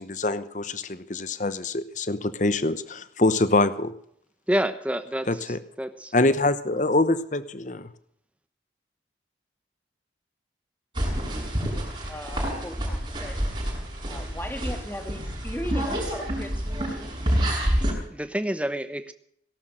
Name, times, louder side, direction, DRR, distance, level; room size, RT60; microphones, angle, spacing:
voice 1, 0.0-3.9 5.3-5.6 6.1-7.9, left 2 dB, 45° left, 14 dB, 1.0 m, -24 dB
voice 2, 4.5-6.1 18.1-19.1, equal, 5° right, 11 dB, 1.0 m, -28 dB
sound 1, 10.9-17.9, equal, 25° right, 6.1 m, -28 dB
voice 3, 11.3-13.4 14.1-17.0, equal, 10° left, 6 dB, 2.0 m, -38 dB
18.0 x 12.0 x 6.4 m, 0.67 s
head